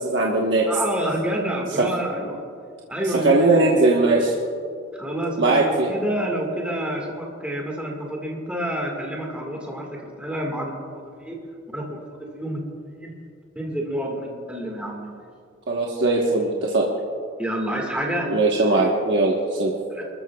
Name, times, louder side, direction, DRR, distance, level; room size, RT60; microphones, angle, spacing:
voice 1, 0.0-0.7 1.8-1.9 3.1-4.3 5.4-5.9 15.7-16.8 18.3-19.7, right 2 dB, 60° right, -3 dB, 1.3 m, -19 dB
voice 2, 0.6-2.4 2.9-3.8 4.9-11.4 11.7-12.6 13.0-13.1 13.5-15.3 17.4-18.3 19.9-20.0, right 1 dB, 5° right, -1 dB, 1.8 m, -28 dB
27.0 x 13.5 x 2.4 m, 2.3 s
head